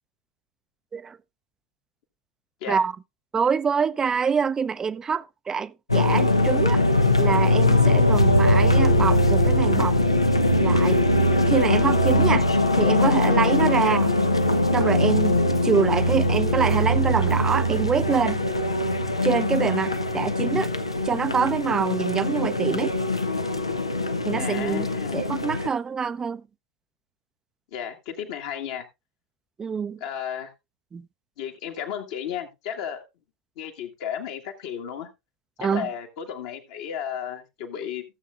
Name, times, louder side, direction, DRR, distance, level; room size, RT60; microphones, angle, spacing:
voice 1, 3.3-6.8 7.2-10.0 10.6-11.0 11.3-12.5 12.7-14.1 14.7-18.4 19.2-20.7 21.0-23.0 24.2-24.9 25.1-26.4 29.6-30.0 30.9-31.1 35.6-35.9, right 6 dB, 20° right, 0.5 m, -25 dB
sound 1, 5.9-25.7, left 1 dB, 90° left, 0.7 m, -21 dB
voice 2, 24.4-25.3 27.7-28.9 30.0-30.5 31.4-33.0 33.6-35.1 35.6-38.0, left 9 dB, 55° left, 1.6 m, -33 dB
15.0 x 7.4 x 2.4 m
figure-of-eight pair, 80°, 3 cm